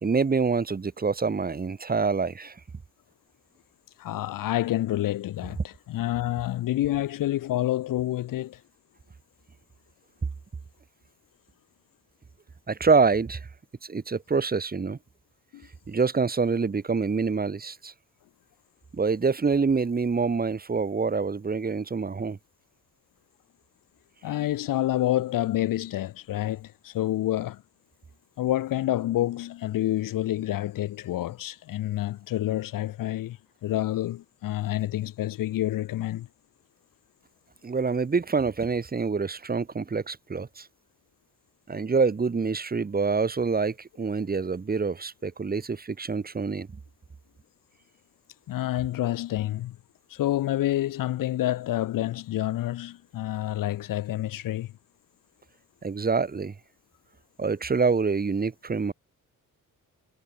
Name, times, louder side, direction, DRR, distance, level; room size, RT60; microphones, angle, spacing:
voice 1, 0.0-2.6 12.7-13.5 13.8-15.0 15.9-17.9 18.9-22.4 37.6-40.7 41.7-46.7 55.8-56.5 57.4-58.9, right 4 dB, 25° right, 2.1 m, -26 dB
voice 2, 4.0-8.6 15.5-15.7 24.2-27.6 28.4-36.3 48.5-49.8 50.1-54.7, left 14 dB, 70° left, 0.6 m, -28 dB
wide cardioid pair, 145°, 35 cm